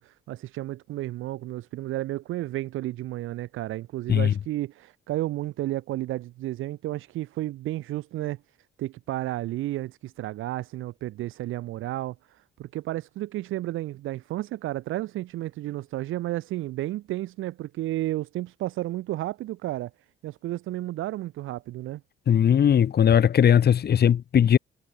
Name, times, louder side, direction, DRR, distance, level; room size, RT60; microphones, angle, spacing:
voice 1, 0.0-8.4 8.8-19.9 20.2-22.0, right 15 dB, 90° right, 7.6 m, -32 dB
voice 2, 22.3-24.6, left 9 dB, 55° left, 1.6 m, -19 dB
cardioid pair, 90°, 20 cm